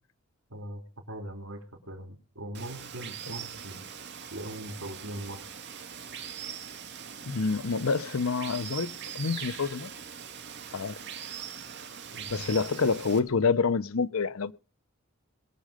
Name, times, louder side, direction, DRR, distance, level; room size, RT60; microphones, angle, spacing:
voice 1, 0.5-0.8 1.1-3.8 4.3-5.4 12.1-12.5, right 1 dB, 75° right, 3.5 m, -40 dB
Water, 2.5-13.2, right 8 dB, 55° right, 2.4 m, -41 dB
voice 2, 7.3-9.9 10.7-11.0 12.3-14.5, left 4 dB, 85° left, 0.7 m, -27 dB
22.0 x 7.5 x 5.0 m
head